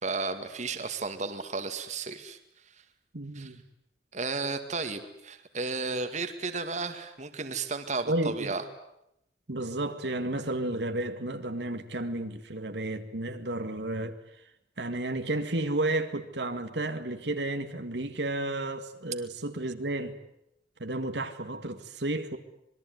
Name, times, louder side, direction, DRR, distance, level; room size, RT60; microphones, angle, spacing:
voice 1, 0.0-2.4 3.3-3.5 4.1-8.6, right 4 dB, 40° right, 8 dB, 2.2 m, -33 dB
voice 2, 3.1-3.6 8.1-8.5 9.5-14.2 14.8-20.2 20.8-22.4, right 2 dB, 70° right, 7 dB, 2.1 m, -32 dB
26.5 x 21.5 x 9.5 m, 0.80 s
head